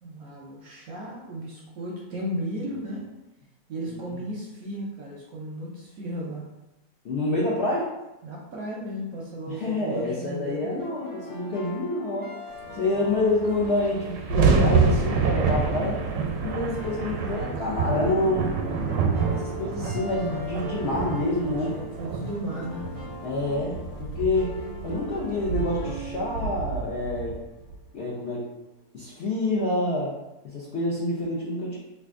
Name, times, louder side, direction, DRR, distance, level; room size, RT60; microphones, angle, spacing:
voice 1, 0.0-3.1 3.7-6.5 8.2-10.7 12.6-13.1 21.5-22.9, equal, 70° right, -3 dB, 0.9 m, -35 dB
voice 2, 7.0-7.9 9.5-12.3 12.8-16.0 16.4-18.5 19.4-21.7 23.2-24.6 24.8-27.4 27.9-28.5 28.9-30.1 30.4-31.8, left 2 dB, 65° left, -7 dB, 0.6 m, -27 dB
sound 1, 10.8-27.7, right 1 dB, 25° left, 0.4 m, -40 dB
sound 2, 13.1-13.2 13.4-27.8, right 5 dB, 85° right, 1.3 m, -27 dB
3.3 x 2.5 x 3.6 m, 0.96 s
omnidirectional pair, 2.0 m